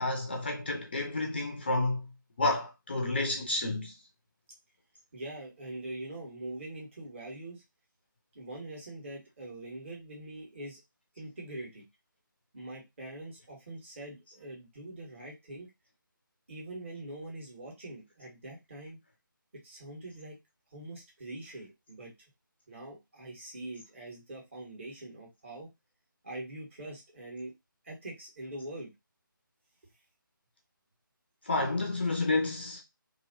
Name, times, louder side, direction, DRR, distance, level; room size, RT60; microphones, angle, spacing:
voice 1, 0.0-2.1 2.4-3.9 31.4-32.8, left 2 dB, 30° left, 0.4 m, -30 dB
voice 2, 5.1-7.6 8.3-10.8 11.1-11.8 12.5-15.7 16.5-19.0 19.6-20.4 20.7-22.1 22.7-25.7 26.2-27.5 27.8-28.9, right 1 dB, 35° right, 1.5 m, -43 dB
2.9 x 2.7 x 2.6 m
figure-of-eight pair, 155°, 12 cm